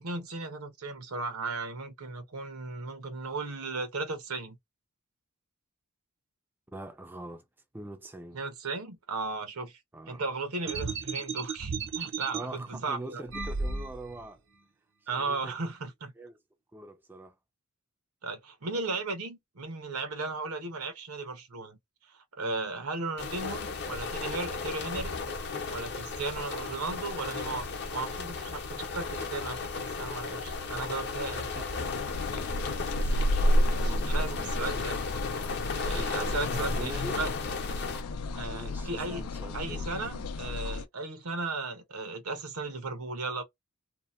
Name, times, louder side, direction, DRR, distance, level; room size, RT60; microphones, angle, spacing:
voice 1, 0.0-4.6 8.3-9.8 10.1-13.2 15.1-16.1 18.2-21.8 22.0-25.2 25.7-31.5 33.0-35.0 35.7-37.3 38.3-39.3 39.5-43.4, right 3 dB, 85° right, 0.9 m, -36 dB
voice 2, 6.7-7.4 7.7-8.4 9.9-10.2 12.3-14.4 15.1-15.5 16.2-16.4 16.7-17.3 31.6-31.9 33.0-34.9 35.9-37.2 38.5-39.9, right 1 dB, 10° right, 0.3 m, -43 dB
sound 1, 10.7-12.4 13.3-14.2, right 4 dB, 60° right, 0.6 m, -34 dB
sound 2, 23.2-38.0, left 4 dB, 50° left, 0.7 m, -35 dB
sound 3, 31.8-40.8, left 1 dB, 90° left, 0.5 m, -31 dB
2.7 x 2.2 x 2.5 m
head